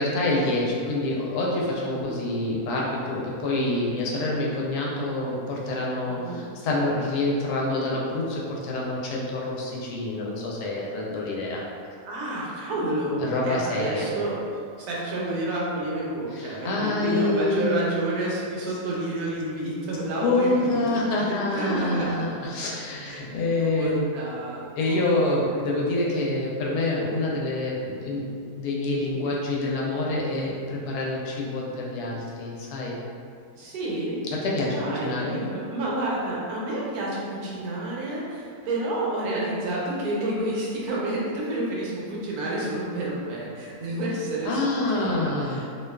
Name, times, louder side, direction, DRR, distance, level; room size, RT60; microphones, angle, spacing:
voice 1, 0.0-11.6 13.2-14.1 16.3-18.0 20.2-24.0 24.8-28.3 28.6-33.0 34.3-35.4 44.4-45.6, left 2 dB, 90° left, -3 dB, 1.1 m, -27 dB
voice 2, 6.1-6.4 12.1-14.4 14.8-21.0 21.5-22.3 23.0-23.2 23.6-25.5 28.9-29.2 33.5-34.2 34.7-45.6, right 1 dB, 80° right, -5 dB, 1.1 m, -30 dB
2.6 x 2.2 x 2.2 m, 2.3 s
omnidirectional pair, 1.6 m